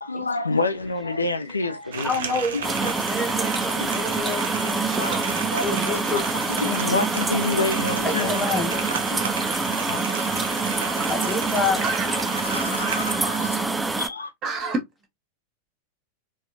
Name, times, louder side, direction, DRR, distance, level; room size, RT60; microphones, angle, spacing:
voice 1, 0.0-3.4 3.8-4.3 5.0-9.4 9.9-11.4 12.1-14.3, left 3 dB, 80° left, 0.5 m, -30 dB
sound 1, 1.9-13.1, right 6 dB, 60° right, 0.8 m, -33 dB
voice 2, 2.0-4.8 5.6-6.2 6.7-7.0 8.0-8.8 11.0-11.9, left 3 dB, 10° left, 0.9 m, -28 dB
sound 2, 2.6-14.1, right 3 dB, 10° right, 0.4 m, -26 dB
voice 3, 4.9-5.2 5.7-5.8 6.1-6.2 8.9-9.3 9.6-9.8 10.2-10.3 10.8-11.1 11.8-12.1 12.8-13.0 14.4-14.8, right 3 dB, 30° right, 1.4 m, -31 dB
4.2 x 2.4 x 2.7 m
figure-of-eight pair, 90°, 0 cm